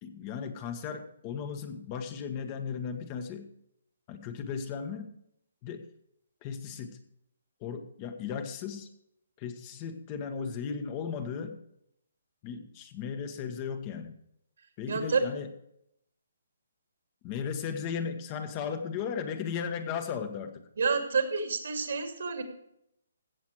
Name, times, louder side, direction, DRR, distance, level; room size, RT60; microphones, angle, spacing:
voice 1, 0.0-3.5 4.1-5.1 5.6-5.9 6.4-7.0 7.6-8.9 9.4-11.6 12.4-14.1 14.8-15.5 17.2-20.5, left 6 dB, 30° left, 7 dB, 1.3 m, -36 dB
voice 2, 14.9-15.2 20.8-22.4, right 5 dB, 65° right, 5 dB, 2.4 m, -28 dB
15.5 x 7.4 x 4.7 m, 0.75 s
figure-of-eight pair, 140°, 0 cm